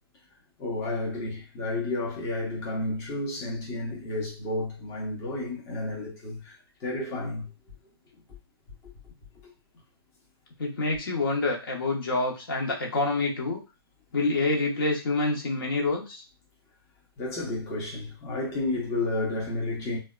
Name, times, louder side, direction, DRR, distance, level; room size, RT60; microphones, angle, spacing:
voice 1, 0.6-7.5 17.2-20.0, left 2 dB, 20° left, 0.7 m, -31 dB
voice 2, 10.6-13.6 14.1-16.2, left 2 dB, 60° left, 0.9 m, -27 dB
3.3 x 2.2 x 2.3 m
hypercardioid pair, 135°, 13 cm